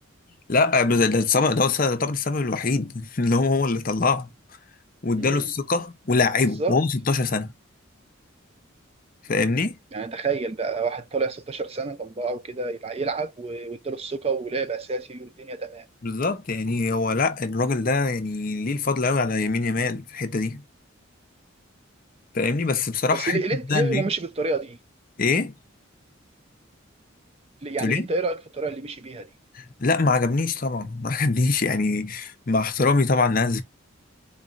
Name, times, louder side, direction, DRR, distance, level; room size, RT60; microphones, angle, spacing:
voice 1, 0.5-4.3 5.0-7.5 9.3-9.8 16.0-20.6 22.3-23.4 23.7-24.1 25.2-25.5 27.8-28.1 29.5-33.6, left 3 dB, 45° left, 0.7 m, -23 dB
voice 2, 9.9-15.9 23.1-24.8 27.6-29.3, right 3 dB, 30° right, 0.4 m, -29 dB
3.9 x 3.0 x 2.5 m
head